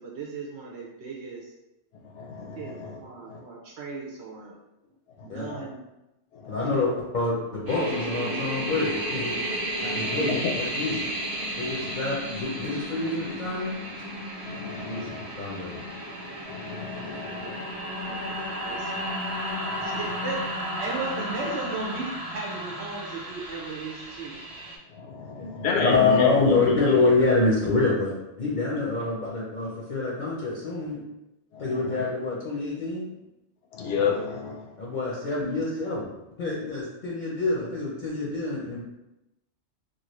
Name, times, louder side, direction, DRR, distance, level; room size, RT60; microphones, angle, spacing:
voice 1, 0.0-1.4 2.6-2.7 3.0-4.6 5.2-5.8 6.6-6.9 17.4-17.6 18.0-19.0 19.8-20.4 20.8-24.4 35.1-35.2, right 3 dB, 75° right, -2 dB, 0.8 m, -36 dB
voice 2, 2.2-3.0 3.3-3.4 5.5-5.6 6.4-6.5 9.9-10.5 11.7-11.9 14.5-15.3 16.5-17.6 19.7-20.0 25.0-27.0 31.5-31.8 33.7-34.7, left 5 dB, 80° left, 0 dB, 0.9 m, -30 dB
voice 3, 6.5-9.3 9.8-11.1 11.5-13.7 14.8-15.8 25.4-31.0 31.6-33.1 34.8-36.1 36.4-38.9, left 3 dB, 50° left, -5 dB, 0.7 m, -26 dB
sound 1, 7.7-24.8, equal, 25° right, 0.5 m, -33 dB
3.0 x 2.5 x 3.0 m, 0.93 s
omnidirectional pair, 1.2 m